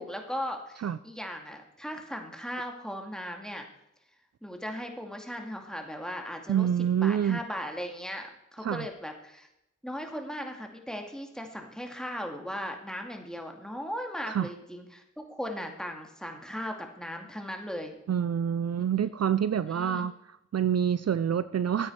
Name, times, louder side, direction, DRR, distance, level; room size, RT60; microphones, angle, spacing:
voice 1, 0.0-3.7 4.4-6.7 7.0-9.5 9.8-18.0 19.5-20.1, equal, ahead, 3 dB, 2.2 m, -38 dB
voice 2, 6.5-7.4 8.6-8.9 14.3-14.5 18.1-21.9, right 8 dB, 60° right, 15 dB, 0.5 m, -27 dB
13.5 x 8.8 x 4.7 m, 0.84 s
cardioid pair, 50°, 29 cm